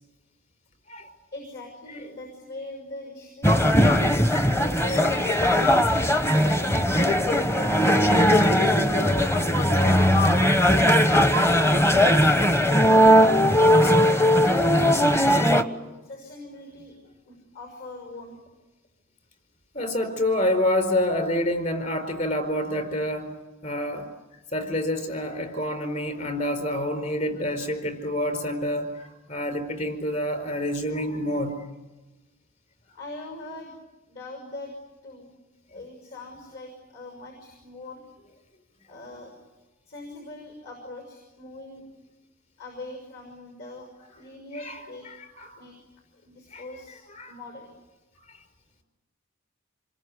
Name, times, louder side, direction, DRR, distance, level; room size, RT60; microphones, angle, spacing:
voice 1, 1.3-4.1 4.4-5.7 6.1-6.8 7.5-8.2 8.9-10.0 10.3-11.3 11.7-12.4 12.7-14.8 15.1-15.6 16.0-17.0 17.2-18.3 32.9-33.8 34.1-34.7 35.0-35.3 35.7-38.0 38.9-39.3 39.8-41.8 42.6-43.9 44.1-45.0 45.6-45.8 46.2-47.0 47.3-47.7, left 2 dB, 60° left, 3 dB, 6.2 m, -40 dB
sound 1, 3.4-15.6, equal, 10° left, 1.0 m, -19 dB
voice 2, 19.7-23.3 23.6-24.1 24.5-31.6 44.6-44.8 45.1-45.5 46.5-46.7 47.1-47.3 48.3-48.4, left 1 dB, 35° left, 6 dB, 4.6 m, -27 dB
27.5 x 22.0 x 9.8 m, 1.1 s
head